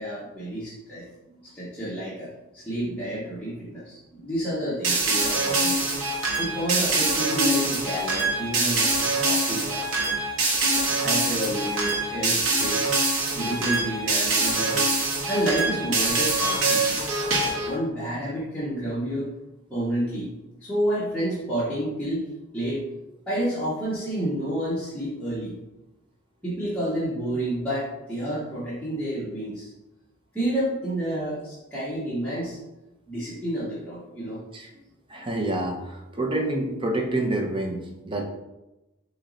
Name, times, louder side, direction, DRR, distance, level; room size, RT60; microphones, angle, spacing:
voice 1, 0.0-1.1 1.5-5.8 6.4-8.9 9.2-9.9 11.0-12.9 13.3-15.0 15.3-17.0 17.6-19.3 19.7-20.3 20.6-22.2 22.5-22.8 23.3-25.6 26.4-29.7 30.3-32.6 33.1-34.4, right 1 dB, 5° left, -10 dB, 0.9 m, -29 dB
sound 1, 4.8-17.7, right 2 dB, 65° right, 1.0 m, -24 dB
voice 2, 35.1-38.2, right 1 dB, 25° right, 1 dB, 0.6 m, -28 dB
4.4 x 3.0 x 3.9 m, 0.98 s
head